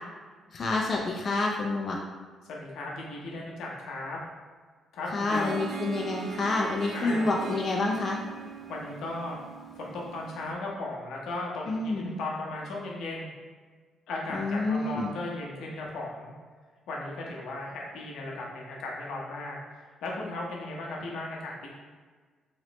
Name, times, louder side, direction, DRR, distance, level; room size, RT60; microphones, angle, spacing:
voice 1, 0.5-2.0 5.1-8.2 11.7-12.2 14.3-15.1, left 3 dB, 45° left, -1 dB, 0.4 m, -28 dB
voice 2, 2.4-4.2 4.9-5.6 6.9-7.3 8.7-9.4 9.8-13.3 14.1-16.3 16.9-21.7, left 2 dB, 80° left, -3 dB, 0.8 m, -36 dB
Harp, 5.3-10.5, right 5 dB, 45° right, 0.4 m, -40 dB
3.1 x 3.0 x 3.0 m, 1.5 s
cardioid pair, 90°, 0 cm